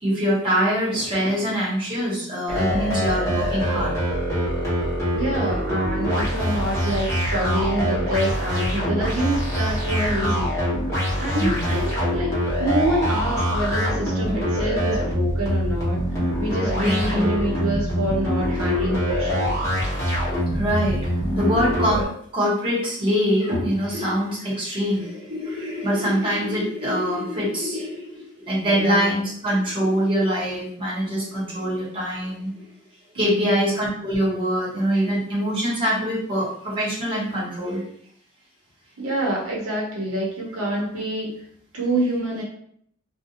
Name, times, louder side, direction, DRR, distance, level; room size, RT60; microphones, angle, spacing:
voice 1, 0.0-3.9 11.4-11.7 16.8-17.2 20.2-32.5 33.1-37.8, equal, 25° right, -6 dB, 1.1 m, -24 dB
sound 1, 2.5-22.1, equal, 15° left, 0.9 m, -24 dB
voice 2, 5.1-10.5 11.2-16.0 16.4-19.6 28.7-29.2 33.2-33.6 39.0-41.3 41.7-42.4, right 1 dB, 85° right, -3 dB, 0.8 m, -26 dB
2.5 x 2.2 x 2.7 m, 0.66 s
head